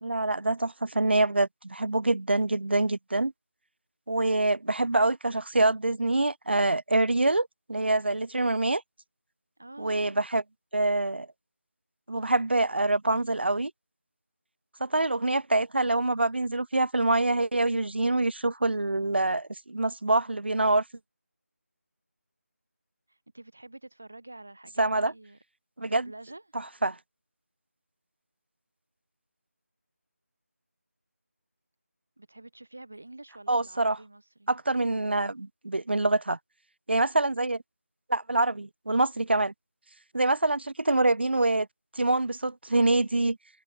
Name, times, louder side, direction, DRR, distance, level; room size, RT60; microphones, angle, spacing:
voice 1, 0.0-3.3 4.1-8.8 9.8-10.4 10.7-11.3 12.1-13.7 14.8-20.8 24.8-25.1 25.8-26.1 26.8-27.0 33.5-34.0 34.5-36.4 36.9-37.6 38.1-39.5 40.1-41.7 41.9-43.4, right 2 dB, 45° right, 1.4 m, -25 dB
voice 2, 9.6-10.2 23.1-25.4 25.8-26.4 32.2-34.5, right 2 dB, 5° right, 0.5 m, -47 dB
figure-of-eight pair, 180°, 8 cm